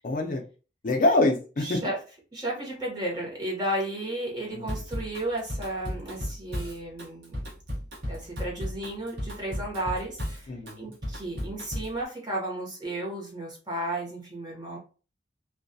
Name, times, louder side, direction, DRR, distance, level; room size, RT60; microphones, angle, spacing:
voice 1, 0.0-0.4 0.8-1.8 4.5-4.7 10.5-10.9, left 2 dB, 45° left, 2 dB, 0.4 m, -25 dB
voice 2, 1.6-2.0 2.3-7.4 8.1-14.8, right 1 dB, 25° right, -2 dB, 0.8 m, -33 dB
Drum kit / Drum, 4.7-12.0, equal, 70° right, 0.9 m, -35 dB
2.2 x 2.1 x 2.6 m, 0.36 s
head